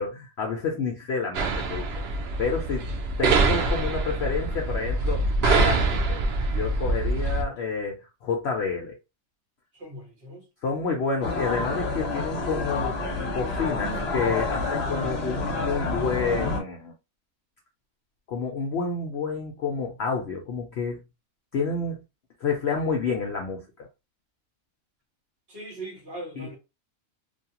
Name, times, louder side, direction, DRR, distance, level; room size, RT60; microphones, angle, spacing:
voice 1, 0.0-1.9 2.4-2.9 3.2-6.2 6.5-9.0 10.6-13.0 13.2-16.9 18.3-21.0 21.5-22.0 22.4-23.9 26.4-26.5, left 4 dB, 65° left, 0.7 m, -29 dB
sound 1, 1.3-7.4, right 3 dB, 70° right, 0.6 m, -25 dB
voice 2, 9.7-10.4 25.5-26.6, right 1 dB, 45° right, 1.3 m, -40 dB
sound 2, 11.2-16.6, left 3 dB, 50° left, 1.0 m, -29 dB
2.5 x 2.3 x 2.8 m
omnidirectional pair, 1.6 m